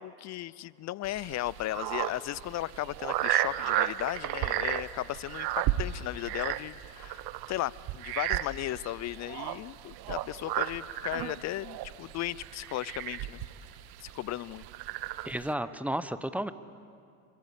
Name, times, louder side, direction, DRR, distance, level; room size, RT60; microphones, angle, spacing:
voice 1, 0.0-13.4 14.0-14.7, left 15 dB, 35° left, 22 dB, 0.6 m, -36 dB
sound 1, 1.0-15.5, right 14 dB, 50° right, 1.1 m, -34 dB
voice 2, 15.2-16.5, right 1 dB, 5° right, 13 dB, 1.0 m, -32 dB
26.0 x 23.0 x 8.4 m, 2.3 s
hypercardioid pair, 75°, 47 cm